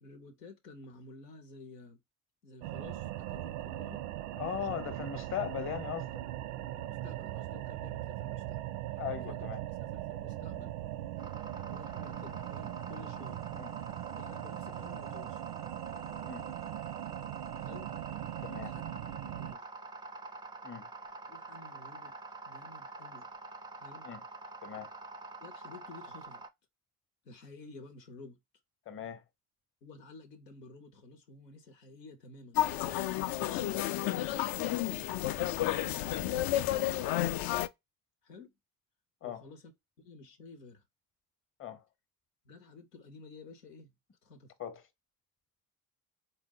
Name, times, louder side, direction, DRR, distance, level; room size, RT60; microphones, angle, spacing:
voice 1, 0.0-2.0 2.4-4.0 4.5-5.0 6.8-8.6 9.2-9.5 9.8-10.7 11.7-13.4 14.1-15.4 17.6-17.9 18.6-18.9 19.2-19.7 21.3-22.2 22.4-23.3 23.8-24.1 25.4-26.4 27.2-28.4 29.8-34.5 38.2-38.6 39.2-39.7 40.0-40.8 42.4-43.9 44.2-44.5, left 3 dB, 90° left, 0.8 m, -52 dB
sound 1, 2.6-19.6, right 14 dB, 75° right, 0.5 m, -40 dB
voice 2, 4.4-6.1 9.0-9.6 13.5-13.7 16.2-16.5 18.4-18.7 20.6-20.9 24.0-24.2 24.6-24.9 28.9-29.2 39.2-39.4 41.6-41.8 44.6-44.8, left 9 dB, 25° left, 0.9 m, -38 dB
sound 2, 11.2-26.5, right 3 dB, 10° right, 0.4 m, -46 dB
sound 3, 32.5-37.7, left 14 dB, 50° left, 0.4 m, -31 dB
3.8 x 2.1 x 3.9 m
hypercardioid pair, 55°, 48 cm